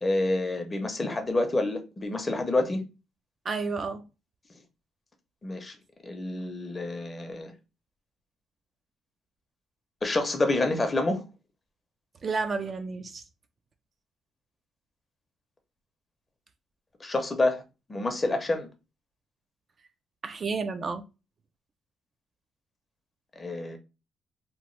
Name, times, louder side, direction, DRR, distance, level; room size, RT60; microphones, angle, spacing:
voice 1, 0.0-2.8 5.4-5.8 6.0-7.5 10.0-11.2 17.0-17.6 17.9-18.7 23.4-23.8, left 2 dB, 25° left, 0.6 m, -28 dB
voice 2, 3.5-4.0 12.2-13.2 20.2-21.0, right 4 dB, 40° right, 0.3 m, -31 dB
2.9 x 2.0 x 3.1 m
cardioid pair, 100°, 0 cm